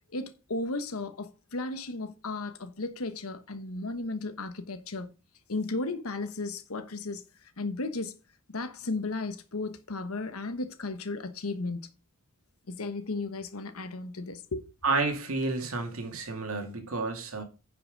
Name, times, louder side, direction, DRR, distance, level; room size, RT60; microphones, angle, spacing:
voice 1, 0.1-5.1 5.5-7.2 7.6-8.1 8.5-11.9 12.7-14.6, left 3 dB, 75° left, 1.2 m, -34 dB
voice 2, 14.8-17.4, right 3 dB, 70° right, 2.3 m, -30 dB
10.0 x 5.8 x 5.2 m
head